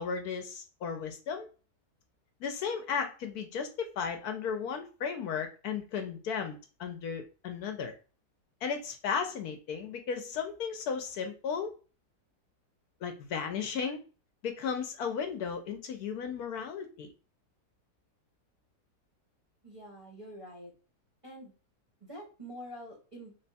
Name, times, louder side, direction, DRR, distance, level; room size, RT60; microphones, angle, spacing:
voice 1, 0.0-1.5 2.4-8.0 8.6-11.7 13.0-14.0 14.4-17.1, left 6 dB, 75° left, 6 dB, 1.0 m, -35 dB
voice 2, 19.6-20.7 21.2-21.5 22.0-23.4, equal, 25° right, -3 dB, 0.8 m, -46 dB
3.4 x 2.2 x 4.0 m, 0.35 s
omnidirectional pair, 1.8 m